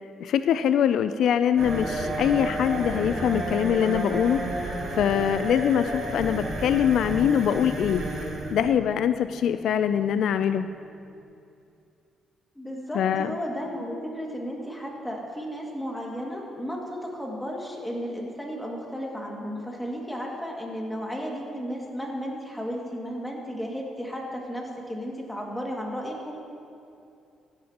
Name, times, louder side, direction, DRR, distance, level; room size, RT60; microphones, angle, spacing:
voice 1, 0.2-4.4 5.0-8.0 8.5-10.7 12.9-13.3, left 9 dB, 70° left, 11 dB, 0.3 m, -23 dB
sound 1, 1.6-11.2, right 1 dB, 65° right, 2.7 m, -32 dB
voice 2, 12.6-26.4, equal, 5° left, -2 dB, 2.1 m, -34 dB
15.5 x 10.5 x 2.9 m, 2.6 s
cardioid pair, 90°, 0 cm